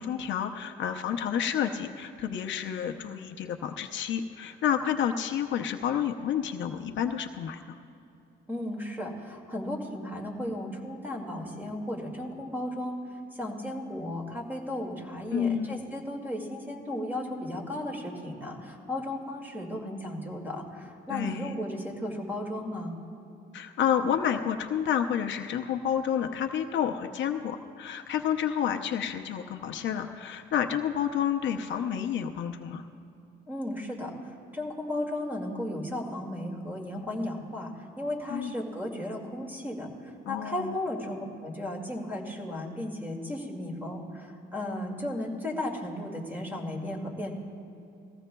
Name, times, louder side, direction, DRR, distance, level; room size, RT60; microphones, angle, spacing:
voice 1, 0.0-7.6 15.3-15.8 21.1-21.5 23.5-32.9 38.3-38.5 40.3-40.7, left 9 dB, 70° left, 5 dB, 0.6 m, -30 dB
voice 2, 8.5-22.9 33.5-47.3, left 1 dB, 10° right, 1 dB, 2.1 m, -35 dB
19.5 x 15.0 x 2.3 m, 2.8 s
cardioid pair, 90°, 20 cm